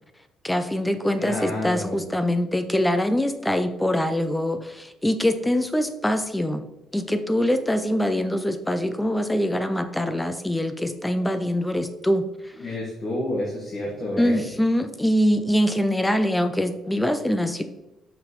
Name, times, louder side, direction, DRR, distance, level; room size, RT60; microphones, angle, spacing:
voice 1, 0.4-6.6 6.9-12.3 14.2-17.6, equal, 5° left, 9 dB, 0.4 m, -23 dB
voice 2, 1.2-2.0 12.6-14.4, left 1 dB, 35° left, -5 dB, 1.4 m, -29 dB
5.9 x 5.4 x 3.0 m, 0.96 s
cardioid pair, 160°, 0 cm